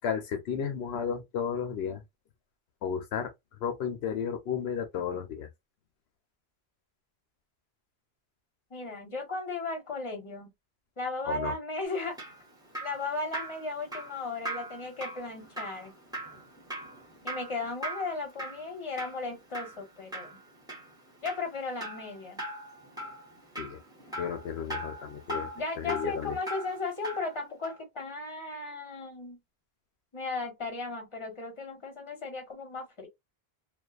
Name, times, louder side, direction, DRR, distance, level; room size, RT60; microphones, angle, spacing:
voice 1, 0.0-2.0 2.8-3.3 3.6-5.5 11.3-11.5 23.6-23.8 24.2-25.5 25.8-26.4, left 7 dB, 85° left, 0.9 m, -33 dB
voice 2, 8.7-10.5 11.0-12.2 12.8-15.9 17.2-20.4 21.2-22.4 25.5-29.4 30.1-33.1, left 3 dB, 30° left, 1.1 m, -36 dB
Drip, 11.9-27.3 27.6-27.8, right 1 dB, 5° right, 1.2 m, -40 dB
2.5 x 2.3 x 2.4 m
omnidirectional pair, 1.0 m